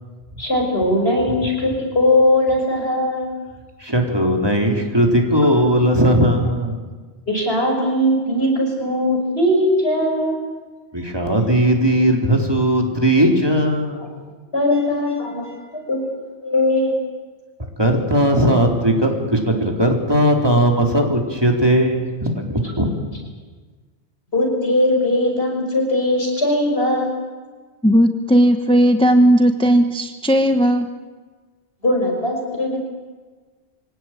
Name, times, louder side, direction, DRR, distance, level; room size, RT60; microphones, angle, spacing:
voice 1, 0.4-3.3 7.3-10.4 14.0-14.1 14.5-15.4 15.7-17.0 24.3-27.2 31.8-32.8, left 1 dB, 65° left, 1 dB, 6.1 m, -19 dB
voice 2, 3.8-6.7 10.9-14.0 17.8-22.9, right 1 dB, 20° right, 1 dB, 3.9 m, -18 dB
voice 3, 27.8-30.9, equal, 5° left, 6 dB, 1.1 m, -15 dB
25.0 x 18.0 x 9.2 m, 1.4 s
omnidirectional pair, 1.1 m